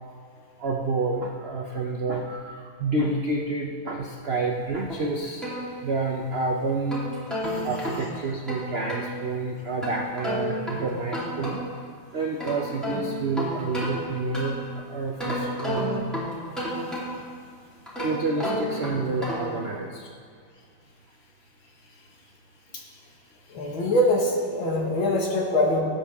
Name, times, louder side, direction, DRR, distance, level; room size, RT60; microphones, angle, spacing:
voice 1, 0.6-5.5 5.8-7.0 7.6-11.6 12.1-14.6 14.9-16.0 18.0-20.1, right 3 dB, 75° right, 1 dB, 0.5 m, -29 dB
sound 1, 4.9-6.2 6.7-9.1 9.8-11.8 12.2-14.7 15.2-17.4 17.9-19.6, equal, ahead, 3.1 m, -32 dB
voice 2, 23.5-25.8, left 1 dB, 90° left, -1 dB, 2.4 m, -23 dB
18.5 x 7.4 x 3.5 m, 2.2 s
omnidirectional pair, 2.1 m